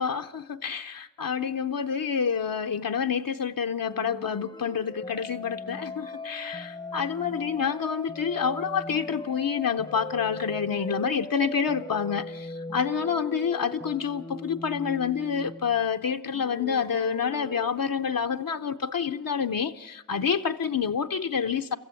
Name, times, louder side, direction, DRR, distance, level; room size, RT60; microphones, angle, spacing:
voice 1, 0.0-21.8, left 7 dB, 80° left, 0.7 m, -28 dB
sound 1, 3.9-15.9 16.3-17.7, left 2 dB, 15° left, 0.6 m, -39 dB
23.5 x 14.5 x 9.4 m
wide cardioid pair, 45°, 33 cm